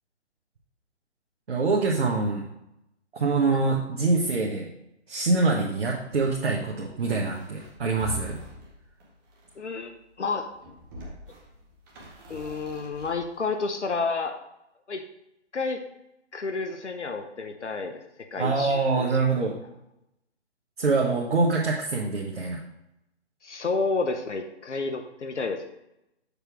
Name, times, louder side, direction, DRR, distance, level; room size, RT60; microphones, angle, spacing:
voice 1, 1.5-2.5 3.1-4.7 5.1-8.4 18.4-19.5 20.8-22.6, right 3 dB, 60° right, -2 dB, 1.2 m, -25 dB
sound 1, 6.0-9.8 10.4-13.5, equal, 20° right, 1.0 m, -44 dB
voice 2, 9.6-10.5 12.3-14.4 14.9-15.0 15.5-15.8 16.3-18.0 18.3-19.1 23.4-25.7, left 4 dB, 75° left, 6 dB, 0.9 m, -30 dB
6.7 x 3.2 x 6.0 m, 0.85 s
figure-of-eight pair, 145°, 35 cm